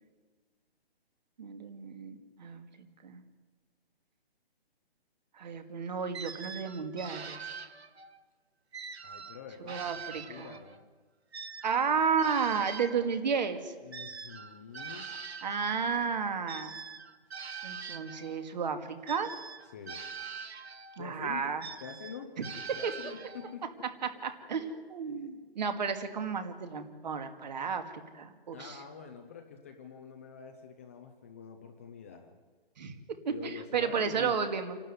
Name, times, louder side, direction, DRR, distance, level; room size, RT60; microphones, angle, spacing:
voice 1, 1.4-3.2 5.3-7.4 9.6-10.5 11.6-13.7 15.4-16.8 17.6-19.3 21.0-21.6 22.4-22.5 22.8-22.9 24.0-28.8 32.8-34.8, right 6 dB, 45° right, 8 dB, 2.2 m, -33 dB
sound 1, 6.1-8.2 8.7-10.8 11.3-15.7 16.5-18.4 19.1-21.0 21.6-23.6, right 6 dB, 90° right, 1.6 m, -43 dB
voice 2, 9.0-10.8 13.8-15.1 19.7-20.0 21.0-21.4 21.8-22.3 22.7-23.9 25.2-25.4 28.5-32.4 33.3-34.3, left 6 dB, 15° left, 3 dB, 0.6 m, -46 dB
27.5 x 12.5 x 9.3 m, 1.4 s
hypercardioid pair, 170°, 31 cm